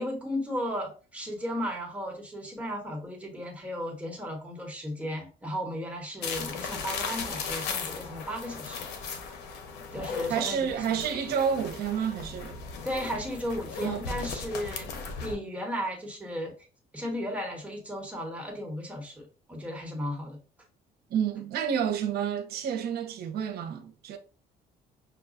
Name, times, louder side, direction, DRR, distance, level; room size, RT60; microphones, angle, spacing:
voice 1, 0.0-9.3 9.9-11.0 12.8-16.5 16.9-20.4, equal, 10° right, 1.2 m, -35 dB
sound 1, 6.2-15.4, left 5 dB, 85° left, 0.7 m, -37 dB
voice 2, 10.3-12.6 13.8-14.0 21.1-24.2, right 7 dB, 70° right, 0.8 m, -29 dB
6.0 x 2.3 x 2.5 m
cardioid pair, 110°, 17 cm